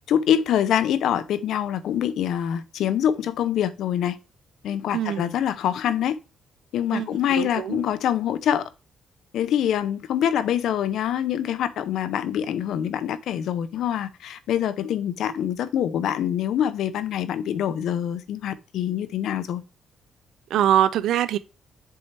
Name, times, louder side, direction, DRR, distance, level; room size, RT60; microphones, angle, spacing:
voice 1, 0.1-4.2 4.6-6.2 6.7-8.7 9.3-19.6, left 10 dB, 80° left, 0.6 m, -25 dB
voice 2, 4.9-5.3 6.9-7.1 7.4-7.8 20.5-21.4, right 11 dB, 85° right, 0.4 m, -22 dB
7.1 x 4.6 x 4.2 m
cardioid pair, 125°, 0 cm